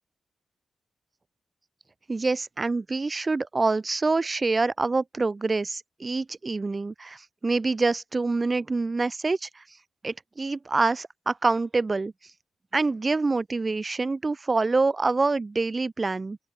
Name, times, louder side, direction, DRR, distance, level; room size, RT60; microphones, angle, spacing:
voice 1, 2.1-9.6 10.0-12.1 12.7-16.4, right 3 dB, 35° right, 2.3 m, -26 dB
open air
cardioid pair, 55°, 0 cm